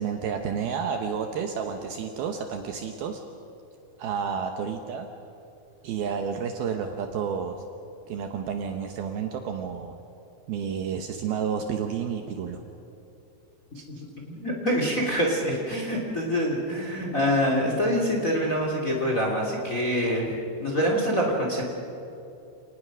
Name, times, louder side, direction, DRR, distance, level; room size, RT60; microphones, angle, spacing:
voice 1, 0.0-3.2 4.0-5.1 5.8-7.6 8.1-10.0 10.5-12.6 13.8-13.9, right 7 dB, 70° right, 5 dB, 2.5 m, -30 dB
voice 2, 14.3-20.3 20.6-21.6, equal, 20° left, 0 dB, 2.4 m, -25 dB
28.5 x 19.0 x 6.2 m, 2.8 s
omnidirectional pair, 5.2 m